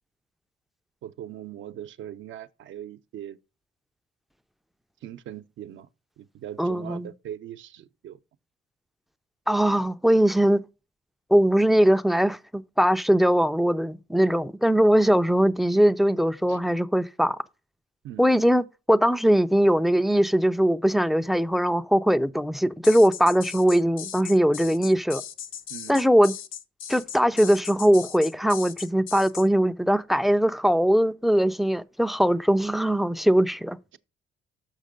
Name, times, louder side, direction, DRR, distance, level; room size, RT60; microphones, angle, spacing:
voice 1, 1.0-3.4 5.0-5.9 6.2-8.2 16.5-16.6 18.0-18.4 25.7-26.0, right 11 dB, 75° right, 0.7 m, -40 dB
voice 2, 6.6-7.1 9.5-10.6 11.3-17.4 18.2-25.2 25.9-26.3 26.9-34.0, equal, ahead, 0.4 m, -21 dB
sound 1, 22.8-29.5, left 9 dB, 85° left, 0.7 m, -38 dB
6.5 x 5.9 x 5.1 m
cardioid pair, 90°, 20 cm